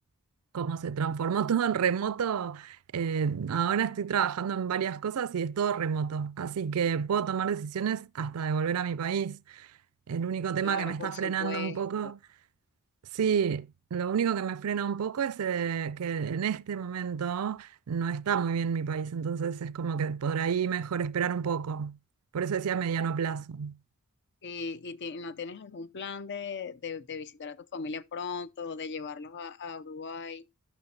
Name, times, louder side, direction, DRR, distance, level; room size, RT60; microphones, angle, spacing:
voice 1, 0.5-9.7 10.1-12.2 13.1-22.0 22.3-23.8, right 7 dB, 80° right, 0.4 m, -30 dB
voice 2, 10.6-12.1 24.4-30.5, left 5 dB, 55° left, 0.6 m, -38 dB
12.5 x 6.0 x 2.8 m
head